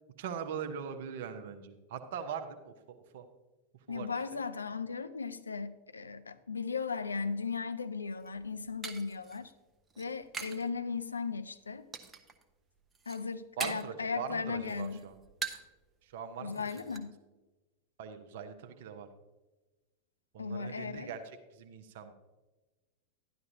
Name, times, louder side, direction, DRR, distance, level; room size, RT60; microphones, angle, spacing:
voice 1, 0.2-3.3 3.9-4.1 13.6-15.2 16.0-17.0 18.0-19.1 20.3-22.1, right 7 dB, 55° right, 7 dB, 0.8 m, -41 dB
voice 2, 3.9-9.5 10.0-11.9 13.1-15.1 16.4-17.2 20.4-21.1, left 5 dB, 75° left, 11 dB, 0.5 m, -37 dB
sound 1, 8.1-10.7 11.0-11.5 11.9-12.4 12.8-14.0 14.4-15.8 16.1-16.2 16.5-17.0, right 5 dB, 20° right, 0.8 m, -43 dB
12.0 x 10.5 x 2.7 m, 1.2 s
figure-of-eight pair, 90°, 0 cm